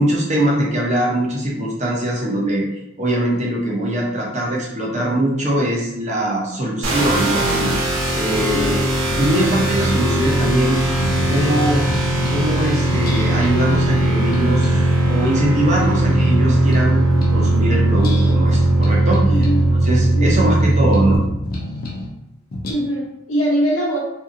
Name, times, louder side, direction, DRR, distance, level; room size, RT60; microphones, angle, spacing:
voice 1, 0.0-2.7 3.0-7.7 8.1-8.8 9.2-10.8 11.3-11.8 12.3-19.2 19.7-21.2, right 1 dB, 35° right, -3 dB, 0.6 m, -21 dB
sound 1, 6.8-21.2, right 1 dB, 75° right, 0.6 m, -18 dB
voice 2, 8.4-8.7 19.2-19.7 20.1-20.4 22.7-24.0, equal, 70° left, -7 dB, 0.9 m, -22 dB
sound 2, 9.0-12.5 12.9-17.6 17.9-22.1 22.5-22.7, left 1 dB, 45° left, 0.5 m, -29 dB
2.7 x 2.6 x 2.5 m, 0.86 s
head